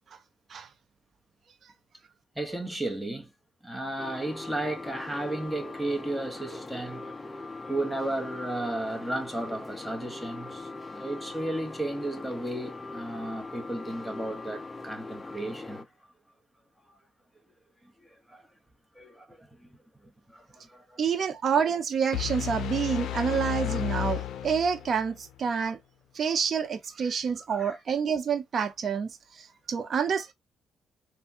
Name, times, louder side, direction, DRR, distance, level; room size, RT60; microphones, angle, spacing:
voice 1, 2.3-3.3 3.6-7.2 7.7-15.9 18.0-18.4 18.9-21.0 25.6-25.7 27.4-27.8, right 1 dB, ahead, 1.0 m, -34 dB
sound 1, 4.0-15.9, left 3 dB, 15° left, 0.4 m, -41 dB
voice 2, 21.0-25.8 26.1-30.3, right 6 dB, 50° right, 0.5 m, -28 dB
sound 2, 22.1-25.1, left 14 dB, 75° left, 0.4 m, -32 dB
3.3 x 2.2 x 2.7 m
cardioid pair, 90°, 0 cm